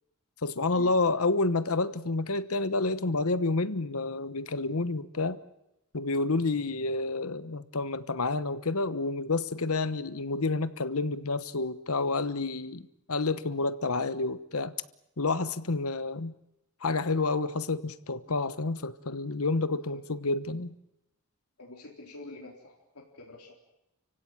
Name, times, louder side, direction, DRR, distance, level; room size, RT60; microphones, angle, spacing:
voice 1, 0.4-5.4 5.9-14.7 15.2-16.3 16.8-20.7, left 3 dB, 75° left, 13 dB, 1.2 m, -29 dB
voice 2, 21.6-23.5, left 2 dB, 90° left, -1 dB, 3.9 m, -47 dB
30.0 x 16.5 x 8.9 m, 0.91 s
head